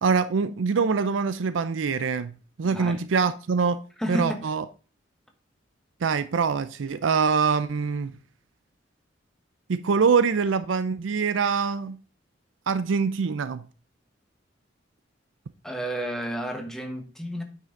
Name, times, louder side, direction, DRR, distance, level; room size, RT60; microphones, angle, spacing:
voice 1, 0.0-2.3 2.6-3.8 4.1-4.6 6.0-8.1 9.7-12.0 12.7-13.6, right 5 dB, 85° right, 0.5 m, -24 dB
voice 2, 2.6-3.0 4.0-4.4 15.6-17.4, equal, 5° left, 1.2 m, -31 dB
9.1 x 5.6 x 3.8 m
head